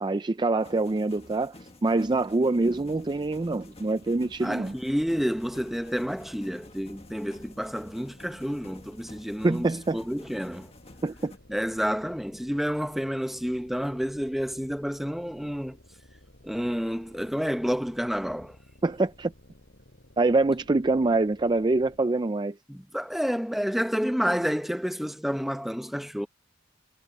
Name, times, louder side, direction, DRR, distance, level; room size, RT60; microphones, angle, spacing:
voice 1, 0.0-4.7 9.4-10.0 11.0-11.3 18.8-19.3 20.2-22.6, right 2 dB, 25° right, 0.4 m, -25 dB
sound 1, 0.6-11.4, left 2 dB, 30° left, 1.6 m, -51 dB
sound 2, 2.6-22.2, left 1 dB, 60° left, 8.0 m, -55 dB
voice 2, 4.4-9.7 9.9-10.7 11.5-15.8 16.4-18.6 22.7-26.3, equal, ahead, 0.8 m, -29 dB
head